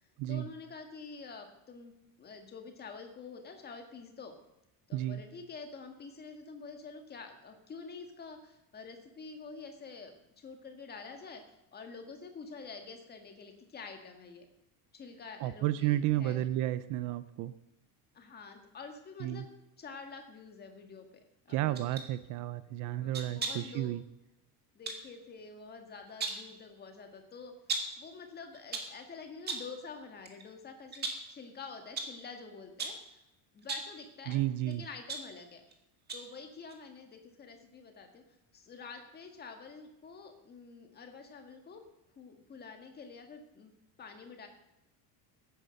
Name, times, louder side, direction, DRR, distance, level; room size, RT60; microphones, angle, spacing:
voice 1, 0.3-4.3 4.9-11.4 11.7-14.5 14.9-16.5 18.1-19.5 19.8-21.8 22.9-24.0 24.7-27.5 28.0-33.2 33.5-35.6 36.1-38.2 38.5-41.8 42.2-43.7 44.0-44.5, left 4 dB, 20° left, 5 dB, 1.8 m, -48 dB
voice 2, 15.4-17.5 19.2-19.4 21.5-24.0 34.3-34.8, right 14 dB, 45° right, 15 dB, 0.5 m, -32 dB
sound 1, 21.7-22.1 23.1-23.7 24.9-25.1 26.0-26.5 27.7-28.0 28.5-29.0 29.5-29.8 30.2-30.4 30.9-31.3 32.0-32.2 32.8-33.1 33.6-34.0 34.7-35.7 36.1-36.4 36.7-36.8, right 4 dB, 20° right, 1.8 m, -38 dB
16.0 x 9.4 x 6.5 m, 0.92 s
cardioid pair, 175°, 45 cm